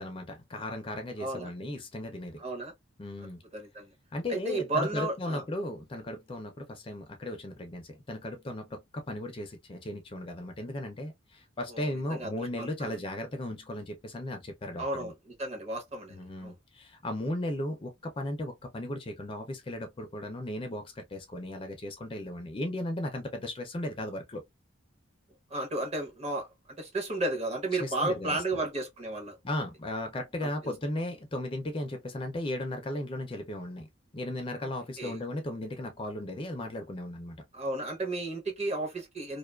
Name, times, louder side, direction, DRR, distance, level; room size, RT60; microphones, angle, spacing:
voice 1, 0.0-2.4 3.0-3.4 4.1-15.1 16.1-24.4 27.7-28.4 29.4-33.9 34.1-37.4, left 1 dB, 25° left, 0.4 m, -36 dB
voice 2, 1.2-1.5 2.4-2.7 3.5-3.9 4.3-5.4 11.7-12.9 14.8-15.1 15.4-16.6 25.5-26.5 26.8-29.4 30.4-30.7 34.6-34.7 35.0-35.2 37.5-39.4, right 2 dB, 30° right, 0.7 m, -33 dB
2.5 x 2.3 x 2.2 m
head